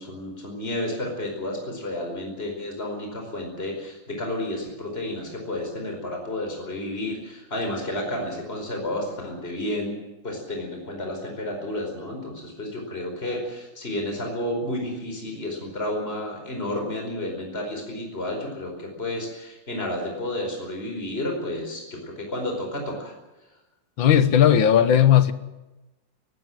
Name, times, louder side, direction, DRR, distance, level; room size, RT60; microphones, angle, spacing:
voice 1, 0.0-9.9 10.2-23.1, left 1 dB, 30° left, 5.1 m, -31 dB
voice 2, 24.0-25.3, left 9 dB, 80° left, 2.0 m, -16 dB
23.0 x 17.5 x 7.8 m
omnidirectional pair, 2.1 m